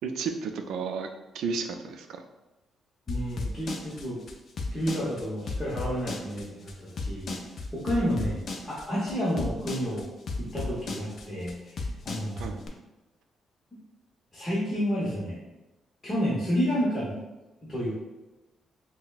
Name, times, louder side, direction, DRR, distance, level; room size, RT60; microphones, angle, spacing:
voice 1, 0.0-1.1 1.3-2.2 12.4-12.6, right 5 dB, 85° right, 6 dB, 0.4 m, -32 dB
sound 1, 3.1-12.7, left 3 dB, 40° left, 0.4 m, -34 dB
voice 2, 3.1-4.2 4.7-7.4 7.7-10.1 10.4-12.5 14.3-15.4 16.0-17.2 17.6-17.9, equal, 15° left, -9 dB, 0.9 m, -30 dB
5.6 x 2.1 x 2.4 m, 1.0 s
cardioid pair, 175°, 0 cm